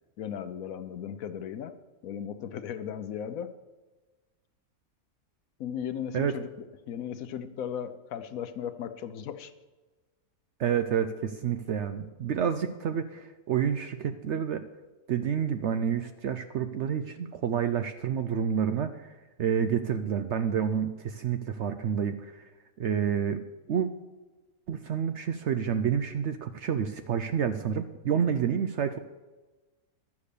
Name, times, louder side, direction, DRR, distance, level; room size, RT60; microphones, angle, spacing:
voice 1, 0.2-1.7 2.0-3.5 5.6-6.5 6.9-9.5, left 8 dB, 70° left, 11 dB, 1.1 m, -36 dB
voice 2, 10.6-14.7 15.1-19.1 19.4-22.5 22.8-23.9 24.7-29.0, right 8 dB, 65° right, 9 dB, 0.7 m, -29 dB
11.5 x 7.2 x 6.7 m, 1.2 s
omnidirectional pair, 1.6 m